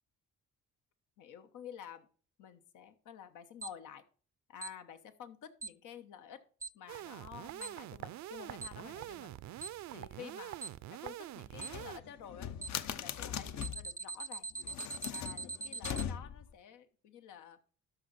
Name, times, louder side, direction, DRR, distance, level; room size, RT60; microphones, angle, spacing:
voice 1, 1.2-2.1 2.4-4.0 4.5-6.4 6.7-9.4 9.9-10.6 10.9-12.5 12.9-14.5 15.1-17.6, left 9 dB, 85° left, 9 dB, 1.2 m, -50 dB
Alarm, 3.6-3.7 4.6-4.7 5.6-5.7 6.6-6.7 7.6-7.7 8.6-8.7 9.6-9.7 10.6-10.7 11.6-11.7 12.6-12.7 13.6-16.0, right 3 dB, 10° right, 0.3 m, -41 dB
sound 1, 6.9-12.0, right 14 dB, 65° right, 0.5 m, -45 dB
sound 2, 11.5-13.9 14.6-16.5, left 9 dB, 65° left, 0.9 m, -40 dB
12.5 x 5.0 x 4.1 m, 0.42 s
cardioid pair, 90°, 30 cm